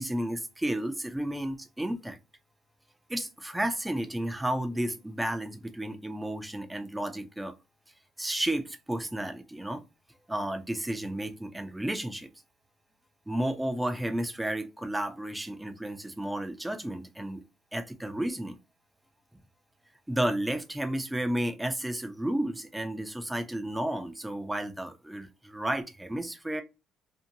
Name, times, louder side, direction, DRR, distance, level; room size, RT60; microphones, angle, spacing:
voice 1, 0.0-2.2 3.1-7.5 8.2-9.8 10.3-12.3 13.3-17.4 17.7-18.6 20.1-26.6, right 1 dB, 5° right, 0.4 m, -32 dB
2.6 x 2.1 x 2.6 m
cardioid pair, 110°, 0 cm